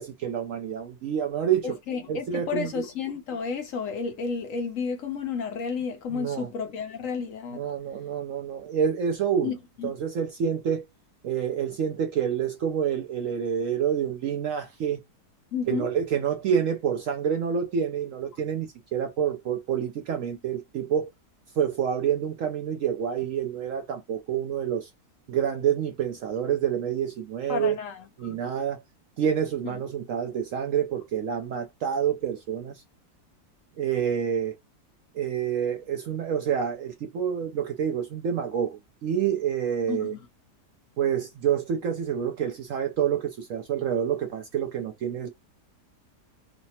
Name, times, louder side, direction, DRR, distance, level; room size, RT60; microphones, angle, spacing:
voice 1, 0.0-1.8 2.1-2.7 6.1-6.5 7.6-9.5 9.8-10.8 11.2-15.0 15.7-21.1 21.6-24.9 25.3-27.8 28.2-28.8 29.2-32.8 33.8-34.5 35.1-40.1 41.0-45.3, right 8 dB, 70° right, 0.8 m, -28 dB
voice 2, 1.6-7.6 9.4-9.9 15.5-15.9 27.5-28.3 29.6-29.8 39.9-40.2, left 5 dB, 65° left, 0.9 m, -32 dB
3.2 x 2.0 x 2.7 m
omnidirectional pair, 1.8 m